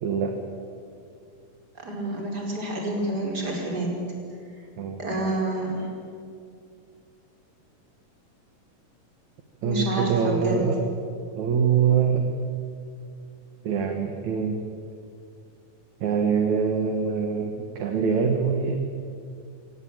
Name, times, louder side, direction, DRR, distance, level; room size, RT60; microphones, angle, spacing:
voice 1, 0.0-0.4 4.8-5.0 9.6-10.8 11.4-12.2 13.6-14.6 16.0-18.8, right 6 dB, 60° right, 4 dB, 2.7 m, -24 dB
voice 2, 1.8-4.0 5.0-5.9 9.6-10.6, right 1 dB, 30° right, -1 dB, 5.3 m, -28 dB
27.5 x 17.5 x 8.8 m, 2.4 s
omnidirectional pair, 3.9 m